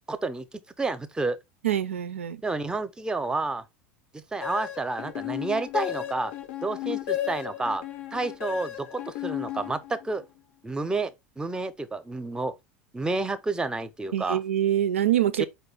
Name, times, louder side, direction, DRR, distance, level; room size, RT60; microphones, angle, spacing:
voice 1, 0.1-1.4 2.4-3.6 4.1-6.3 6.6-7.8 8.1-10.2 10.6-12.5 12.9-14.4 15.4-15.5, right 3 dB, 10° right, 0.5 m, -30 dB
voice 2, 1.6-2.4 14.1-15.4, right 11 dB, 85° right, 0.4 m, -25 dB
sound 1, 4.4-10.2, left 13 dB, 65° left, 0.5 m, -34 dB
4.7 x 2.2 x 3.3 m
hypercardioid pair, 85°, 7 cm